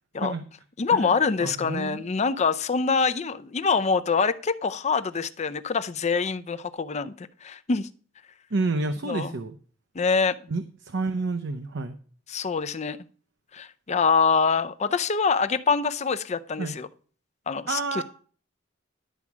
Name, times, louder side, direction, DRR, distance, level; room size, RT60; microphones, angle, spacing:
voice 1, 0.8-7.9 9.0-9.3 9.9-10.4 12.3-13.0 13.5-16.9 17.5-18.0, left 5 dB, 35° left, 12 dB, 0.5 m, -25 dB
voice 2, 1.4-2.0 8.5-9.6 10.5-12.0 16.6-16.7 17.7-18.0, right 3 dB, 65° right, 8 dB, 0.7 m, -29 dB
11.0 x 4.8 x 7.2 m, 0.43 s
head